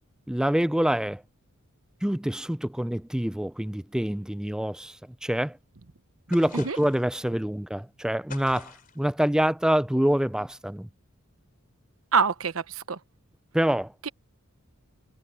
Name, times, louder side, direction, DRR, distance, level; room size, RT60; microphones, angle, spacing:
voice 1, 0.3-1.2 2.0-5.6 6.3-10.9 13.5-13.9, equal, 5° right, 0.4 m, -26 dB
sound 1, 6.3-7.1 8.3-9.0, left 5 dB, 45° left, 4.0 m, -45 dB
voice 2, 12.1-13.0 14.0-14.1, right 5 dB, 80° right, 1.1 m, -25 dB
head